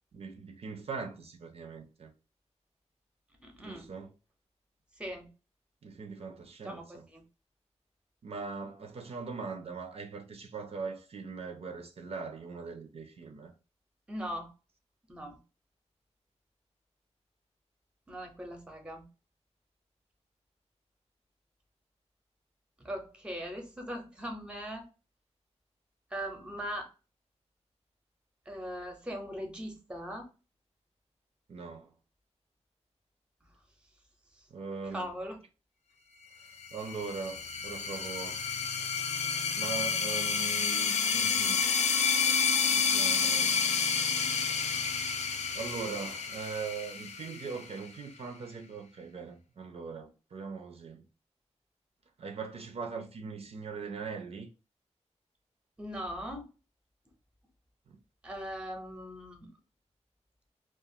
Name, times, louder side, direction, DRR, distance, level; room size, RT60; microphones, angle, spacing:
voice 1, 0.1-2.1 3.6-4.1 5.8-7.1 8.2-13.5 31.5-32.0 34.5-35.1 36.7-38.4 39.5-41.6 42.7-43.6 44.5-44.9 45.5-51.1 52.2-54.5 57.9-58.0, right 5 dB, 60° right, 0.5 m, -41 dB
voice 2, 3.4-3.9 5.0-5.3 6.6-7.2 14.1-14.5 15.1-15.4 18.1-19.1 22.8-24.8 26.1-26.9 28.5-30.3 34.4-34.5 34.9-35.4 55.8-56.5 58.2-59.5, equal, 10° right, 0.7 m, -40 dB
sound 1, 36.6-47.9, left 6 dB, 75° left, 0.4 m, -30 dB
2.4 x 2.4 x 2.7 m
wide cardioid pair, 150°, 12 cm